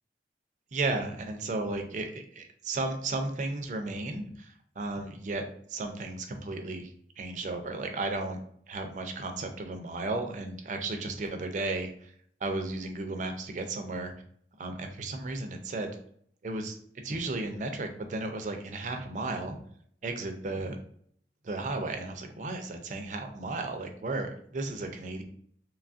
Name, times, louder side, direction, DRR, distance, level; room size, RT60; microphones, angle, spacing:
voice 1, 0.7-5.4 5.7-6.9 7.2-8.4 8.7-11.9 12.4-14.1 14.6-16.0 16.4-16.7 17.0-19.5 20.0-20.8 21.4-25.2, right 2 dB, 45° right, 5 dB, 0.4 m, -34 dB
3.0 x 2.3 x 2.5 m, 0.62 s
head